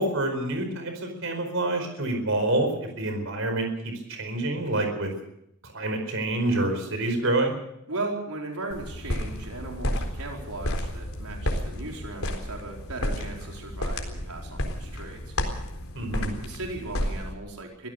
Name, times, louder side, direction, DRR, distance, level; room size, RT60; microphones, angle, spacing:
voice 1, 0.0-2.7 3.0-5.1 5.7-7.6 15.9-16.3, right 2 dB, 65° right, 5 dB, 4.7 m, -27 dB
voice 2, 7.9-15.3 16.4-17.9, right 2 dB, 85° right, 0 dB, 4.6 m, -37 dB
sound 1, 8.7-17.3, left 1 dB, 75° left, 4.0 m, -32 dB
24.5 x 16.5 x 6.8 m, 0.79 s
head